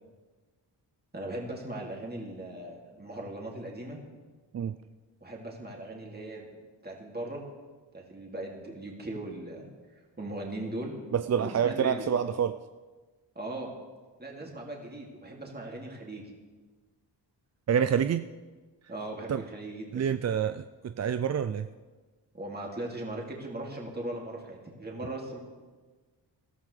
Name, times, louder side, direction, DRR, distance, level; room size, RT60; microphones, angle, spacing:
voice 1, 1.1-4.0 5.2-6.5 6.8-7.4 7.9-9.7 10.2-11.0 11.3-12.1 13.4-13.7 14.2-16.2 18.9-20.0 22.3-25.4, right 1 dB, 20° right, -1 dB, 2.5 m, -38 dB
voice 2, 11.1-12.6 17.7-18.3 19.3-19.4 19.9-21.7, right 8 dB, 40° right, 11 dB, 0.4 m, -27 dB
18.5 x 13.0 x 3.3 m, 1.3 s
cardioid pair, 65°, 44 cm